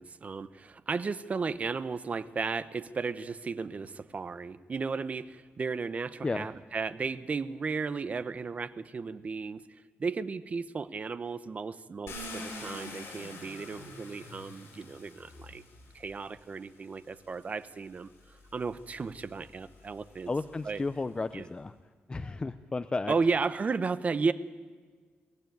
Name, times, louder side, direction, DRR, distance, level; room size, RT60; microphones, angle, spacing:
voice 1, 0.0-9.6 10.0-15.6 15.9-20.3 20.6-20.8 21.3-21.5 23.1-24.3, right 4 dB, 35° right, 15 dB, 0.8 m, -34 dB
Car, 12.1-16.2 17.1-17.2 17.7-21.0, left 2 dB, 75° left, 7.7 m, -46 dB
voice 2, 20.3-21.7 22.1-23.1, left 3 dB, 20° left, 11 dB, 0.5 m, -33 dB
22.5 x 16.5 x 9.3 m, 1.5 s
wide cardioid pair, 145°, 4 cm